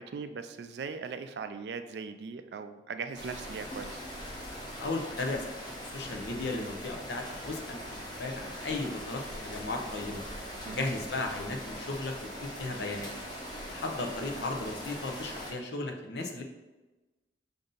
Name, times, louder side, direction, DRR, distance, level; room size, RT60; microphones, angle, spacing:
voice 1, 0.0-4.0 10.7-10.9, right 5 dB, 65° right, 9 dB, 0.3 m, -39 dB
sound 1, 3.1-15.5, equal, 25° left, 0.9 m, -41 dB
voice 2, 4.8-5.5 5.8-10.2 10.7-12.1 12.4-13.1 13.7-16.4, left 2 dB, 75° left, 3 dB, 0.7 m, -35 dB
5.2 x 2.6 x 3.8 m, 1.1 s
head